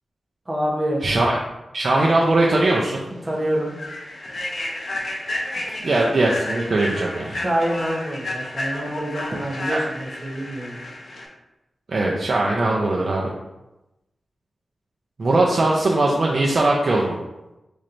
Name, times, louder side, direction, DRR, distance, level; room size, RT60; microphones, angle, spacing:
voice 1, 0.5-1.0 3.2-3.7 7.3-10.8, right 1 dB, 30° right, -3 dB, 1.0 m, -26 dB
voice 2, 1.0-1.4 1.7-3.0 5.8-7.4 9.7-9.8 11.9-13.3 15.2-17.2, right 2 dB, 55° right, -3 dB, 0.5 m, -20 dB
Human voice / Train, 2.4-2.5 3.0-3.2 3.7-11.3, left 1 dB, 60° left, 0.7 m, -31 dB
4.2 x 3.1 x 2.6 m, 0.96 s
wide cardioid pair, 85°, 0 cm